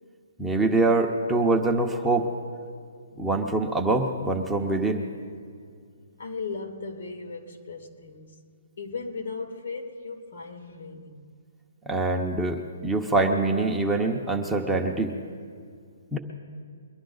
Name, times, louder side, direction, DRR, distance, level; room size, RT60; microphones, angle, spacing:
voice 1, 0.4-2.3 3.2-5.0 11.9-15.1 16.1-16.2, right 2 dB, 5° right, 0.8 m, -24 dB
voice 2, 6.2-8.4 8.8-11.3, left 4 dB, 70° left, 2.3 m, -37 dB
23.5 x 11.0 x 3.9 m
hypercardioid pair, 160°, 0 cm